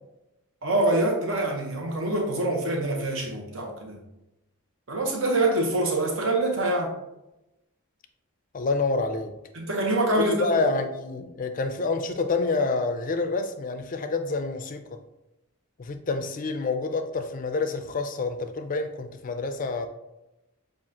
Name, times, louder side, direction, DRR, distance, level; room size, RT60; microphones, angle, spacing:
voice 1, 0.6-4.0 4.9-6.9 9.5-10.7, right 2 dB, 60° right, 0 dB, 1.1 m, -25 dB
voice 2, 8.5-9.3 10.2-14.8 15.8-19.9, left 3 dB, 35° left, 8 dB, 0.4 m, -28 dB
7.3 x 2.5 x 2.8 m, 0.93 s
head